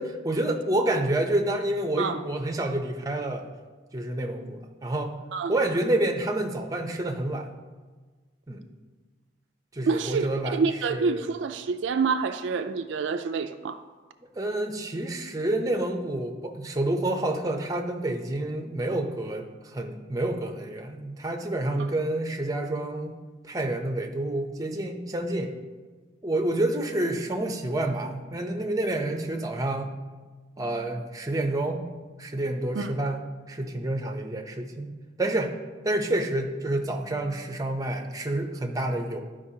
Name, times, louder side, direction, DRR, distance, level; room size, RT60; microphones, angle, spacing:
voice 1, 0.0-3.4 3.9-5.1 5.5-7.5 8.5-8.6 9.7-11.3 14.4-23.1 23.4-25.5 26.2-29.9 30.6-31.8 32.2-34.9 35.2-35.6 35.8-39.2, right 1 dB, 15° right, 0.6 m, -28 dB
voice 2, 9.8-10.3 10.5-13.8 32.8-32.9, right 5 dB, 65° right, 0.3 m, -27 dB
11.5 x 5.1 x 2.8 m
head